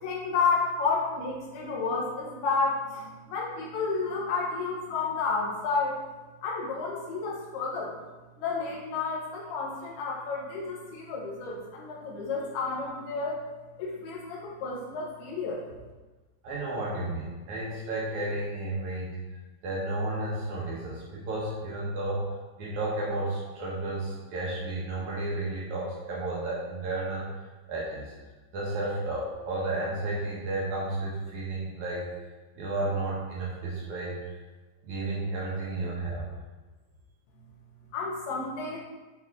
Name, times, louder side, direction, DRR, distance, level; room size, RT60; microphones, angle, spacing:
voice 1, 0.0-6.0 6.4-8.0 8.4-13.4 13.8-15.6 37.9-38.8, left 4 dB, 70° left, -3 dB, 3.1 m, -31 dB
voice 2, 16.4-19.2 19.6-22.3 22.6-27.2 27.7-28.1 28.5-32.0 32.6-34.2 34.8-36.3, right 2 dB, 75° right, -5 dB, 1.7 m, -32 dB
8.9 x 3.5 x 4.7 m, 1.2 s
omnidirectional pair, 5.1 m